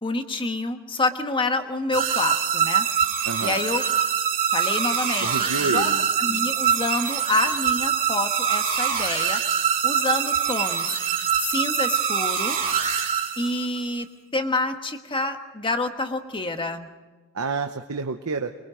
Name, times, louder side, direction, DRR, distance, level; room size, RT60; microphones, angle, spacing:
voice 1, 0.0-2.9 3.4-3.8 4.5-5.9 6.2-9.4 9.8-12.6 13.4-14.1 14.3-16.9, left 2 dB, 25° left, 7 dB, 1.3 m, -27 dB
sound 1, 1.9-13.8, right 8 dB, 40° right, 3.1 m, -24 dB
voice 2, 3.2-3.6 5.2-6.1 17.3-18.5, right 4 dB, 85° right, 6 dB, 0.9 m, -29 dB
24.5 x 22.5 x 5.1 m, 1.3 s
head